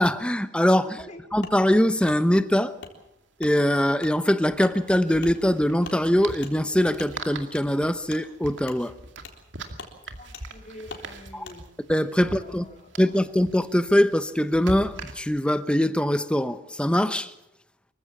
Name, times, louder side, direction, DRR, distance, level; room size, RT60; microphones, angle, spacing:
voice 1, 0.0-1.1 1.3-2.8 3.4-8.9 11.3-11.4 11.9-12.7 13.0-17.3, equal, 5° left, 0.8 m, -22 dB
voice 2, 0.8-1.2 10.2-11.6 12.2-13.2, left 1 dB, 40° left, 3.5 m, -46 dB
Wood, 1.4-1.6 2.1-2.2 2.8-2.9 3.4-3.5 4.0-4.1 4.6-4.8 5.2-5.3 5.8-6.0 6.4-6.5 7.0-7.1 7.5-7.7 8.1-8.2 8.6-8.8 9.2-9.4 9.7-9.9 10.3-10.5 10.9-11.1 11.4-11.6, left 4 dB, 75° left, 3.7 m, -42 dB
sound 1, 2.4-2.5 2.8-2.9 4.4-15.6, right 2 dB, 75° right, 2.3 m, -42 dB
25.5 x 15.5 x 7.2 m
head